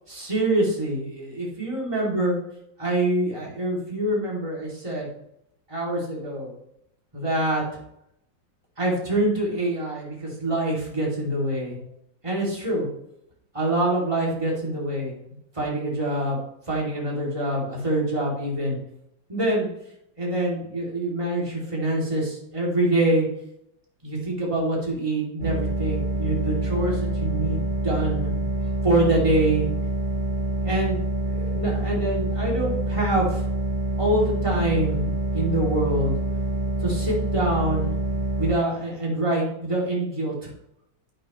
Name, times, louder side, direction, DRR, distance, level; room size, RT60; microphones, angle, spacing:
voice 1, 0.1-2.4 2.8-5.1 5.7-6.5 7.1-7.6 8.8-11.8 12.2-12.9 13.5-15.1 15.5-16.4 16.7-18.8 19.3-19.7 20.2-23.3 24.0-28.3 28.8-29.7 30.6-33.5 34.0-35.0 35.3-36.2 36.8-38.0 38.4-40.5, right 1 dB, 15° right, -4 dB, 2.9 m, -25 dB
sound 1, 25.4-38.6, right 2 dB, 40° right, 0.7 m, -26 dB
11.0 x 8.9 x 3.1 m, 0.78 s
omnidirectional pair, 2.0 m